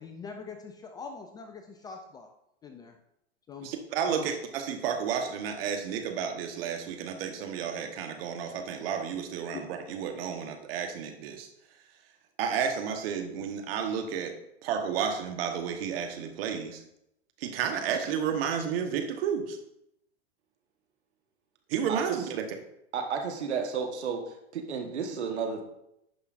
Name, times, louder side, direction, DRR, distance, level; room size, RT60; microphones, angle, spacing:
voice 1, 0.0-2.3 2.6-3.0 3.5-3.7 4.1-4.3 9.5-9.6, left 5 dB, 15° left, 5 dB, 0.3 m, -42 dB
voice 2, 3.6-11.5 12.4-14.3 14.6-16.8 17.4-19.6 21.7-22.4, right 7 dB, 60° right, 5 dB, 1.3 m, -31 dB
voice 3, 22.9-24.2 24.5-25.6, right 6 dB, 75° right, 4 dB, 1.3 m, -32 dB
10.5 x 5.4 x 2.5 m, 0.80 s
hypercardioid pair, 110°, 34 cm